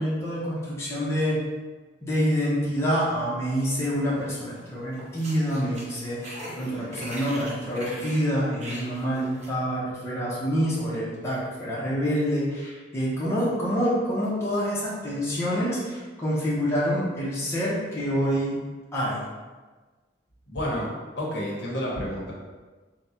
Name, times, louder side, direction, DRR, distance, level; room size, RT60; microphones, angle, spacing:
voice 1, 0.0-1.4 2.0-18.6 18.9-19.2, equal, 15° left, -8 dB, 0.9 m, -27 dB
sound 1, 4.2-4.7 4.9-9.6, equal, 40° right, 0.8 m, -41 dB
voice 2, 20.5-20.9 21.2-22.3, equal, 70° left, -4 dB, 1.1 m, -29 dB
3.8 x 2.3 x 4.2 m, 1.3 s
head